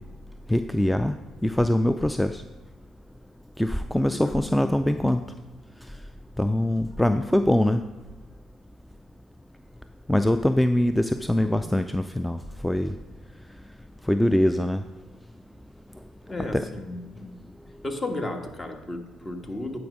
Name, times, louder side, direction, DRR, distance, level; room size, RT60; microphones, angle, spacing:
voice 1, 0.5-1.1 1.4-2.4 3.6-5.2 6.4-7.8 10.1-12.4 12.6-12.9 14.1-14.8 16.5-16.6, left 1 dB, 5° left, 10 dB, 0.4 m, -23 dB
voice 2, 4.1-4.4 11.4-11.5 16.3-17.4 17.8-19.8, left 2 dB, 30° left, 4 dB, 1.3 m, -34 dB
9.2 x 5.0 x 5.1 m, 1.1 s
hypercardioid pair, 55°, 0 cm